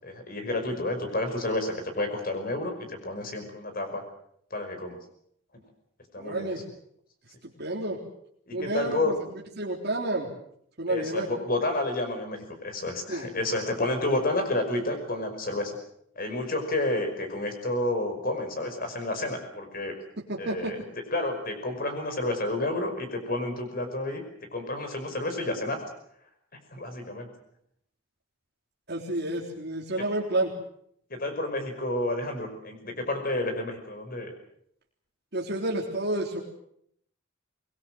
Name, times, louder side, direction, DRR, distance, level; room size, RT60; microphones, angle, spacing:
voice 1, 0.0-4.0 4.5-5.0 6.1-6.6 8.5-9.1 10.9-15.8 16.2-20.0 20.4-20.8 21.1-24.2 24.5-25.8 26.7-27.3 31.1-34.3, left 2 dB, 45° left, 6 dB, 5.5 m, -30 dB
voice 2, 6.2-6.6 7.6-8.0 8.5-9.2 9.6-10.3 10.8-11.3 13.1-13.3 20.2-20.8 28.9-30.5 35.3-36.4, right 1 dB, 55° right, -2 dB, 3.7 m, -30 dB
25.0 x 21.0 x 7.8 m, 0.70 s
head